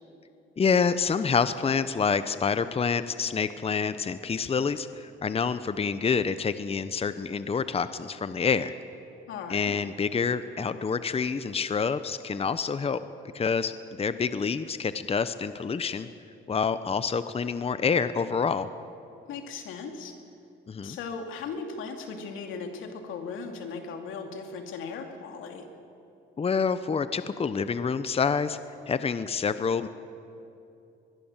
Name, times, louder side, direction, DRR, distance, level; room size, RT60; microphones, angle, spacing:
voice 1, 0.6-8.7 9.5-13.0 13.3-13.7 14.0-16.1 16.5-18.7 20.7-21.0 26.4-28.6 28.9-29.9, left 5 dB, 30° left, 12 dB, 0.8 m, -27 dB
voice 2, 9.3-9.8 19.3-20.2 20.8-25.7, left 5 dB, 90° left, 4 dB, 2.7 m, -37 dB
23.5 x 21.0 x 7.3 m, 2.7 s
cardioid pair, 90°, 20 cm